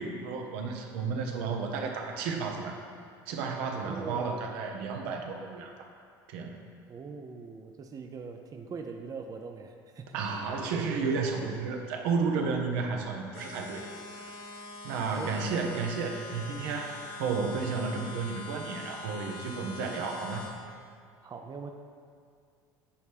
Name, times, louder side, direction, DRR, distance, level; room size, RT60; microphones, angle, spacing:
voice 1, 0.0-2.8 3.3-5.9 6.3-6.6 10.1-14.3 14.8-20.5, right 4 dB, 70° right, 2 dB, 0.8 m, -32 dB
voice 2, 3.8-4.4 6.9-10.2 15.1-15.7 21.2-21.7, right 5 dB, 30° right, 5 dB, 0.5 m, -42 dB
sound 1, 13.3-20.5, left 3 dB, 50° left, 1.1 m, -43 dB
8.4 x 3.2 x 5.0 m, 2.3 s
hypercardioid pair, 70°, 12 cm